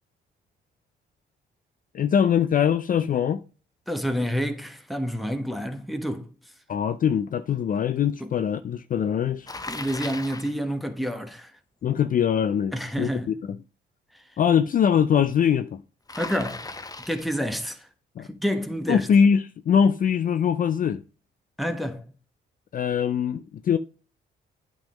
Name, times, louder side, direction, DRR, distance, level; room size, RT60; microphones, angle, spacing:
voice 1, 1.9-3.4 6.7-9.5 11.8-13.1 14.4-15.8 18.2-18.3 18.9-21.0 22.7-23.8, left 8 dB, 45° left, 0.4 m, -22 dB
voice 2, 3.9-6.3 8.2-8.3 9.7-11.5 12.7-13.3 14.1-14.2 16.2-16.7 17.1-17.9 18.2-19.1 21.6-22.1, equal, ahead, 1.2 m, -29 dB
Bicycle, 9.5-10.6 16.1-17.4, left 3 dB, 20° left, 0.8 m, -37 dB
8.8 x 3.9 x 5.1 m
cardioid pair, 90°, 20 cm